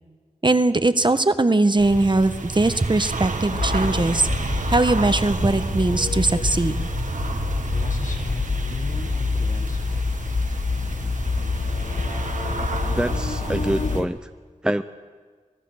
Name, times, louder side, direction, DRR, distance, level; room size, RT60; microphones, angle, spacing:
voice 1, 0.4-4.3 4.7-6.9, right 2 dB, 35° right, 10 dB, 1.2 m, -20 dB
sound 1, 1.8-14.0, right 3 dB, 70° right, 1.6 m, -30 dB
sound 2, 3.5-14.1, left 4 dB, 55° left, 0.7 m, -27 dB
sound 3, 7.7-10.3, left 3 dB, 70° left, 1.9 m, -38 dB
voice 2, 13.0-14.3 14.6-14.8, right 1 dB, 5° right, 9 dB, 0.6 m, -25 dB
24.0 x 17.5 x 6.4 m, 1.5 s
wide cardioid pair, 55°, 13 cm